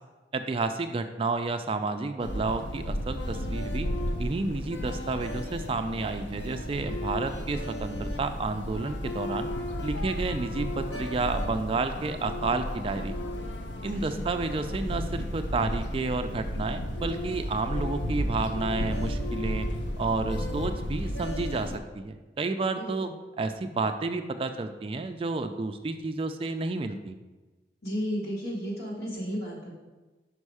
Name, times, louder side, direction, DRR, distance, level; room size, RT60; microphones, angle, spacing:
voice 1, 0.3-3.9 4.2-9.5 9.8-13.1 13.8-19.7 20.0-23.1 23.4-27.2, right 3 dB, 30° right, 7 dB, 0.3 m, -31 dB
sound 1, 2.2-21.8, equal, 90° left, 0.7 m, -33 dB
voice 2, 13.9-14.3 22.7-23.1 27.8-29.7, equal, 60° left, -4 dB, 2.0 m, -34 dB
5.3 x 5.3 x 4.8 m, 1.2 s
head